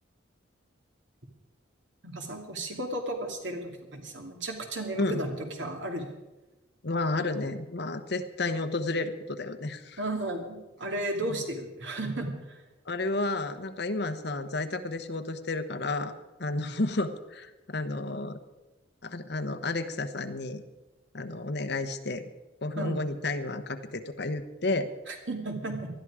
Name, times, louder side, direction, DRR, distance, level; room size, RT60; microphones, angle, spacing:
voice 1, 2.0-6.1 10.0-12.6 22.8-22.9 25.1-25.9, right 1 dB, 70° right, 3 dB, 2.6 m, -34 dB
voice 2, 6.8-10.0 11.3-11.4 12.9-16.1 16.4-18.4 19.0-20.6 21.1-22.3 22.6-24.9, left 2 dB, 60° left, 9 dB, 1.1 m, -31 dB
19.5 x 12.5 x 4.9 m, 1.1 s
head